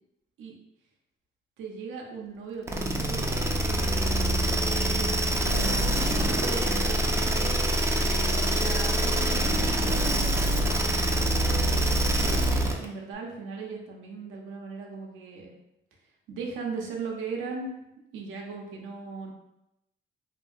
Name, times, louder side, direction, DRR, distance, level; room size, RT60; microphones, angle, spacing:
voice 1, 1.6-7.6 8.3-10.8 11.5-15.6 16.3-17.7 18.1-19.3, right 4 dB, 85° right, 0 dB, 0.6 m, -38 dB
sound 1, 2.7-12.9, right 1 dB, 15° right, 0.4 m, -25 dB
2.7 x 2.7 x 2.3 m, 0.88 s
cardioid pair, 90°, 20 cm